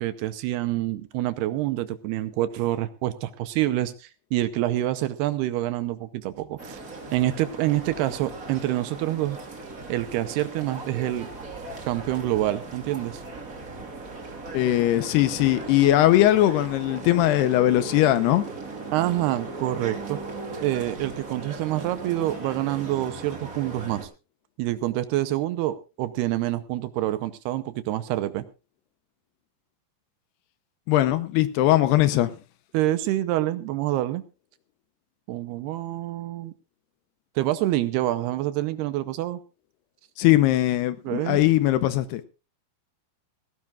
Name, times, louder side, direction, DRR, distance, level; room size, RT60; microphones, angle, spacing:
voice 1, 0.0-6.8 7.1-9.4 9.9-11.3 11.9-13.2 18.9-20.2 20.6-24.1 24.6-28.5 32.7-34.2 35.3-36.5 37.4-39.4 41.0-41.4, right 14 dB, 75° right, 2.6 m, -27 dB
sound 1, 6.6-24.1, right 3 dB, 25° right, 2.0 m, -38 dB
voice 2, 14.5-18.5 30.9-32.3 40.2-42.2, left 14 dB, 75° left, 2.7 m, -20 dB
18.5 x 16.5 x 2.4 m
omnidirectional pair, 5.0 m